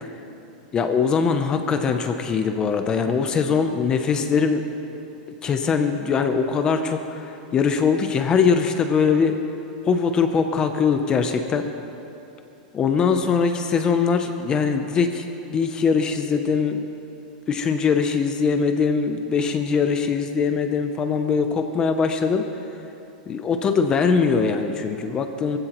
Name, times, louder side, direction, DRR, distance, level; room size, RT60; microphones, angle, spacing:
voice 1, 0.7-4.7 5.4-9.4 9.8-11.7 12.7-16.9 17.5-22.5 23.3-25.6, left 5 dB, 15° left, 7 dB, 0.5 m, -22 dB
24.0 x 15.5 x 3.0 m, 2.9 s
supercardioid pair, 170°, 5 cm